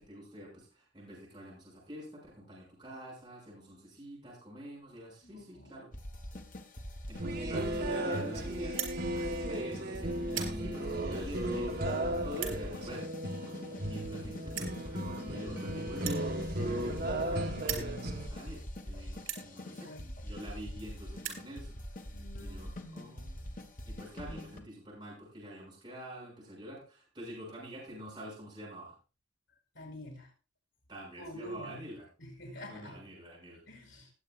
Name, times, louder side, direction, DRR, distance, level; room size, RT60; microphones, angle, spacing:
voice 1, 0.0-5.9 7.1-13.1 13.4-19.9 20.2-21.8 22.4-28.9 30.9-32.0 32.7-33.6, equal, 25° right, -4 dB, 7.0 m, -46 dB
voice 2, 5.2-5.9 19.7-20.1 22.1-22.8 29.7-30.3 31.2-31.8 32.2-33.0 33.7-34.1, left 1 dB, 80° left, 3 dB, 5.4 m, -47 dB
sound 1, 5.9-24.6, equal, 45° left, 1.7 m, -44 dB
sound 2, 7.2-18.3, right 1 dB, 55° right, 1.7 m, -35 dB
sound 3, 8.7-9.0 9.6-9.8 10.2-10.6 11.3-11.4 12.3-12.6 13.6-13.7 13.9-14.0 14.5-14.8 15.9-17.3 17.6-17.9 18.6-18.7 19.2-19.5 20.4-20.5 20.7-20.8 21.0-21.5, right 9 dB, 85° right, 3.7 m, -39 dB
19.5 x 8.7 x 2.6 m, 0.34 s
head